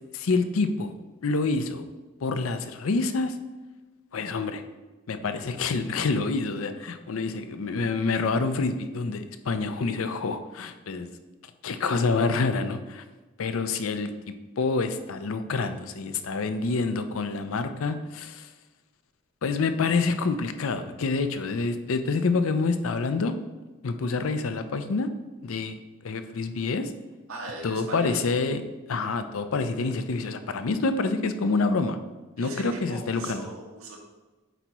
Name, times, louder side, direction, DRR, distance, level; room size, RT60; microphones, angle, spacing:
voice 1, 0.1-0.9 1.2-1.8 2.2-3.3 4.1-4.6 5.1-11.1 11.6-13.0 13.4-14.1 14.6-18.5 19.4-23.3 23.8-25.1 25.4-25.8 26.0-26.9 27.6-28.6 28.9-32.0 32.4-33.4, left 3 dB, 75° left, 9 dB, 0.5 m, -27 dB
voice 2, 27.3-28.2 32.4-34.0, right 1 dB, 80° right, -1 dB, 1.4 m, -39 dB
8.0 x 3.0 x 4.5 m, 1.2 s
head